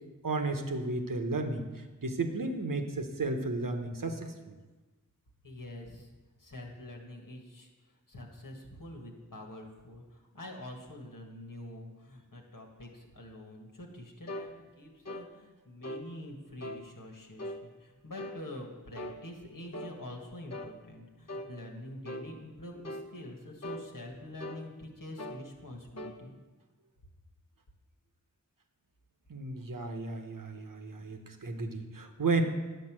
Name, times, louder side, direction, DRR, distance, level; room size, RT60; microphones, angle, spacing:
voice 1, 0.2-4.5 29.3-32.4, right 3 dB, 85° right, 5 dB, 1.0 m, -33 dB
voice 2, 5.4-6.1 6.4-26.3, left 1 dB, 90° left, 1 dB, 1.6 m, -46 dB
sound 1, 14.3-14.5 15.0-15.3 15.8-16.1 16.6-16.8 17.4-17.6 18.2-18.4 18.9-19.2 19.7-20.0 20.5-20.7 21.3-21.5 22.0-22.3 22.8-23.1 23.6-23.9 24.4-24.7 25.2-25.4 26.0-26.2, left 1 dB, 55° left, 0.8 m, -40 dB
10.0 x 5.3 x 7.5 m, 1.2 s
wide cardioid pair, 40°, 32 cm